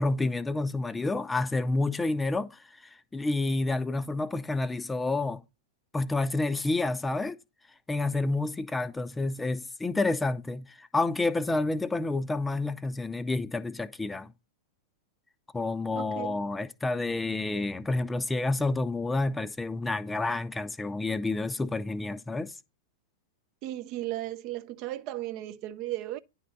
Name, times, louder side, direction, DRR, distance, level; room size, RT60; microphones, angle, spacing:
voice 1, 0.0-2.6 3.1-5.4 5.9-7.4 7.9-14.3 15.5-22.5, left 2 dB, 10° left, 0.5 m, -29 dB
voice 2, 15.9-16.4 23.6-26.2, right 15 dB, 40° right, 0.4 m, -35 dB
10.0 x 4.1 x 4.0 m
figure-of-eight pair, 100°, 0 cm